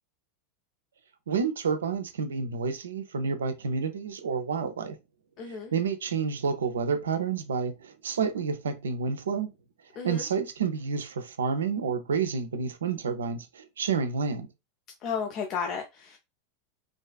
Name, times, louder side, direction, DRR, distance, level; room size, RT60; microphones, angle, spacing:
voice 1, 1.3-5.0 5.5-9.5 10.0-14.5, right 5 dB, 80° right, 0.4 m, -29 dB
voice 2, 5.4-5.7 10.0-10.2 15.0-16.2, left 6 dB, 45° left, 0.4 m, -33 dB
2.5 x 2.3 x 2.3 m
hypercardioid pair, 90°, 0 cm